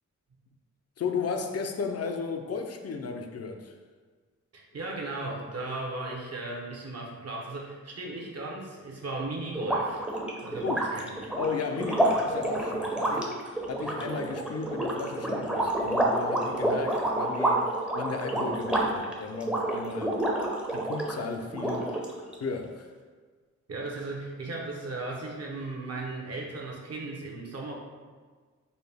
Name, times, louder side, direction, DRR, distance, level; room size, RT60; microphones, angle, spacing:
voice 1, 1.0-3.7 10.6-10.9 11.4-13.4 13.7-20.2 20.7-21.9 22.4-22.9, left 5 dB, 55° left, 5 dB, 0.5 m, -34 dB
voice 2, 4.5-10.1 10.4-11.4 23.7-27.7, right 2 dB, 55° right, -1 dB, 0.8 m, -36 dB
sound 1, 9.6-21.2 21.5-22.3, right 1 dB, 5° right, 0.6 m, -29 dB
4.1 x 2.2 x 3.4 m, 1.5 s
cardioid pair, 55°, 31 cm